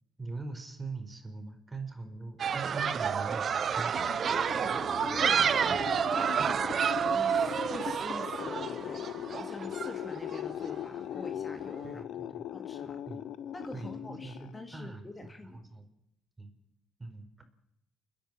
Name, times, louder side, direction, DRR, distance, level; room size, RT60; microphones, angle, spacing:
voice 1, 0.2-3.9 11.8-12.4 13.1-13.3 13.7-15.9 16.4-16.5 17.0-17.3, right 3 dB, 20° right, 6 dB, 4.8 m, -42 dB
sound 1, 2.4-10.4, right 7 dB, 55° right, 1.0 m, -29 dB
sound 2, 3.8-14.9, left 10 dB, 75° left, 0.8 m, -40 dB
voice 2, 4.3-6.6 6.9-13.1 13.5-15.7, left 2 dB, 20° left, 5 dB, 2.3 m, -45 dB
29.5 x 10.5 x 9.0 m, 0.81 s
cardioid pair, 90°, 0 cm